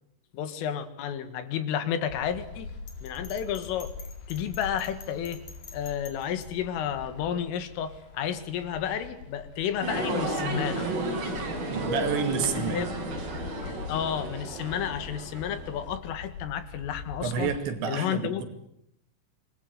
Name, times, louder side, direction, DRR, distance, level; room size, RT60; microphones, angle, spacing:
voice 1, 0.3-2.7 3.0-3.9 4.3-5.4 5.7-10.9 12.6-12.9 13.6-17.5 17.9-18.4, left 9 dB, 85° left, 11 dB, 4.5 m, -31 dB
sound 1, 2.1-17.6, left 5 dB, 60° left, 4.9 m, -44 dB
Bell, 2.9-6.5, left 6 dB, 45° left, 4.1 m, -48 dB
sound 2, 9.8-15.9, right 1 dB, 45° right, 7.0 m, -33 dB
voice 2, 11.7-12.9 17.2-18.4, right 6 dB, 65° right, 6 dB, 4.5 m, -29 dB
26.5 x 21.0 x 9.3 m, 0.77 s
omnidirectional pair, 5.6 m